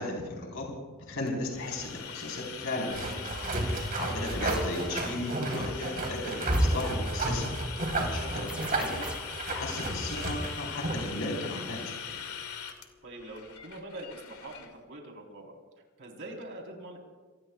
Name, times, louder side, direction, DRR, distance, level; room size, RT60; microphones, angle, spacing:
voice 1, 0.0-3.3 3.6-7.5 7.9-9.0 9.4-12.2, left 2 dB, 60° left, -2 dB, 4.2 m, -36 dB
sound 1, 1.3-14.7, left 7 dB, 80° left, 2.2 m, -42 dB
sound 2, 2.9-11.1, right 1 dB, 40° right, 4.0 m, -31 dB
sound 3, 4.5-4.8 6.5-6.9 8.5-9.4, right 1 dB, 5° right, 2.1 m, -44 dB
voice 2, 13.0-15.5 16.0-17.0, right 1 dB, 55° right, 1 dB, 4.0 m, -44 dB
27.5 x 20.0 x 2.4 m, 1.4 s
head